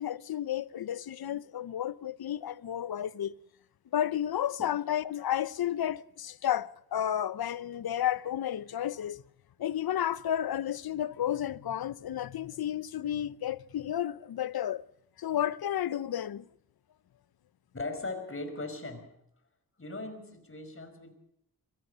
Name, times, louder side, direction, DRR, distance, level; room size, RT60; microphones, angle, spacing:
voice 1, 0.0-3.3 3.9-9.2 9.6-14.8 15.2-16.4, left 11 dB, 80° left, 0.8 m, -32 dB
voice 2, 17.7-19.1 19.8-21.1, left 2 dB, 35° left, 5.2 m, -39 dB
23.0 x 16.5 x 6.8 m
cardioid pair, 70°, 36 cm